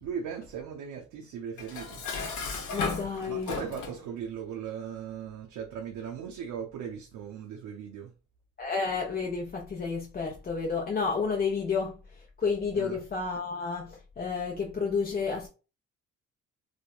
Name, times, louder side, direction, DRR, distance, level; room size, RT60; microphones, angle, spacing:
voice 1, 0.0-2.0 3.3-8.1 12.8-13.0, right 8 dB, 85° right, 0.5 m, -38 dB
Dishes pots and pans, 1.6-4.0, left 4 dB, 75° left, 0.8 m, -35 dB
voice 2, 2.7-3.5 8.6-15.5, left 5 dB, 30° left, 0.5 m, -31 dB
3.2 x 2.1 x 2.3 m
cardioid pair, 90°, 30 cm